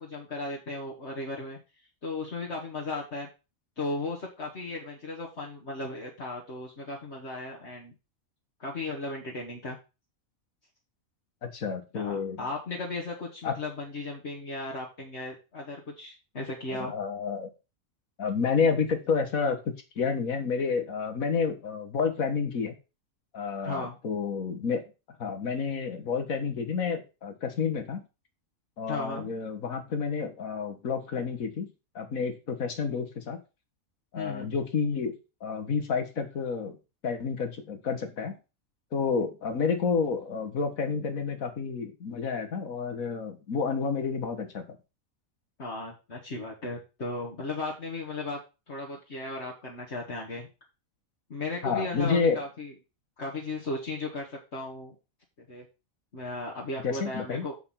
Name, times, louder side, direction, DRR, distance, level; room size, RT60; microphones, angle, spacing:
voice 1, 0.0-1.6 2.0-3.3 3.8-7.9 8.6-9.8 11.9-16.9 23.6-24.0 28.9-29.3 34.2-34.5 45.6-48.4 48.7-50.5 51.3-52.7 53.2-55.0 55.5-55.7 56.1-57.6, left 2 dB, 55° left, -2 dB, 1.8 m, -36 dB
voice 2, 11.4-12.5 13.4-13.5 16.7-17.5 18.2-22.8 23.3-24.8 25.2-28.0 28.8-31.7 32.0-33.4 34.1-35.1 35.4-36.8 37.0-38.4 38.9-44.8 51.6-52.4 56.8-57.5, left 5 dB, 85° left, 6 dB, 1.9 m, -30 dB
6.9 x 5.8 x 5.7 m, 0.29 s
omnidirectional pair, 1.4 m